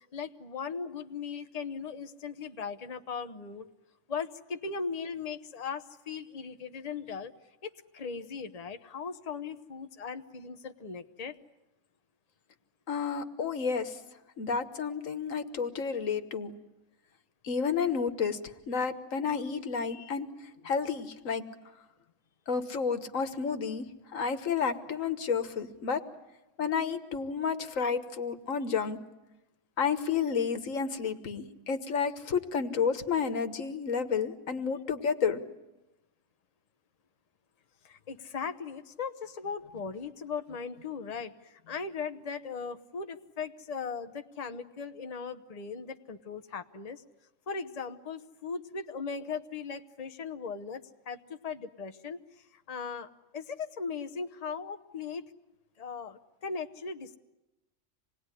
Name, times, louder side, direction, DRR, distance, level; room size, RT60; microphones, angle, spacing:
voice 1, 0.0-3.7 4.1-7.3 7.6-11.3 19.9-20.1 37.8-47.0 47.5-52.2 52.5-55.2 55.8-57.2, left 5 dB, 35° left, 8 dB, 1.0 m, -38 dB
voice 2, 12.9-14.0 14.4-16.5 17.4-18.4 18.7-20.3 20.6-21.4 22.5-23.9 24.1-26.0 26.6-29.0 29.8-35.4, left 6 dB, 85° left, 9 dB, 1.7 m, -31 dB
26.5 x 19.5 x 9.9 m, 1.0 s
omnidirectional pair, 1.3 m